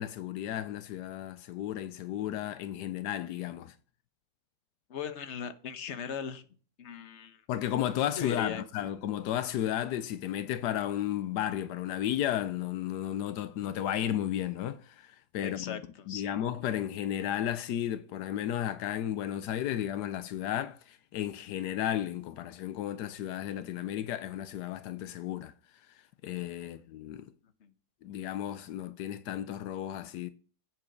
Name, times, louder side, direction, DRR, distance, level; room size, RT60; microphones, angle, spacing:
voice 1, 0.0-3.7 7.5-25.5 26.2-27.3 28.0-30.3, left 11 dB, 85° left, 1.2 m, -33 dB
voice 2, 4.9-6.4 6.8-7.4 8.2-8.9 15.4-16.3 26.6-26.7 27.6-27.7, left 7 dB, 50° left, 1.1 m, -39 dB
7.7 x 7.5 x 5.2 m
omnidirectional pair, 1.7 m